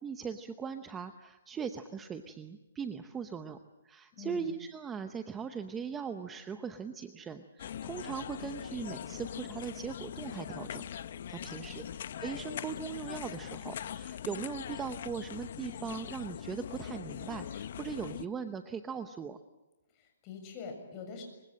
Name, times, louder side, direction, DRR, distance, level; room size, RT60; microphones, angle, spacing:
voice 1, 0.0-3.6 3.8-10.9 11.3-11.9 12.1-19.4, right 6 dB, 10° right, 9 dB, 0.8 m, -39 dB
voice 2, 4.2-4.5 11.4-11.8 19.9-21.2, left 5 dB, 25° left, 3 dB, 7.0 m, -45 dB
sound 1, 7.6-18.3, left 9 dB, 50° left, 0.8 m, -41 dB
27.5 x 24.0 x 7.6 m, 1.0 s
hypercardioid pair, 165°, 0 cm